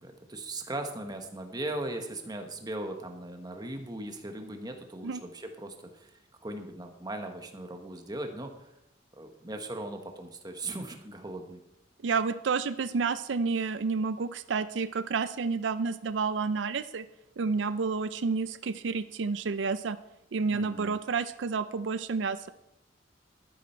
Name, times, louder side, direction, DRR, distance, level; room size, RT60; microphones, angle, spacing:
voice 1, 0.0-8.7 9.1-11.6 20.5-21.0, right 1 dB, 20° right, 5 dB, 1.3 m, -38 dB
voice 2, 12.0-17.1 17.4-20.0 20.3-22.5, right 4 dB, 85° right, 13 dB, 0.5 m, -30 dB
12.5 x 10.0 x 4.4 m, 0.85 s
head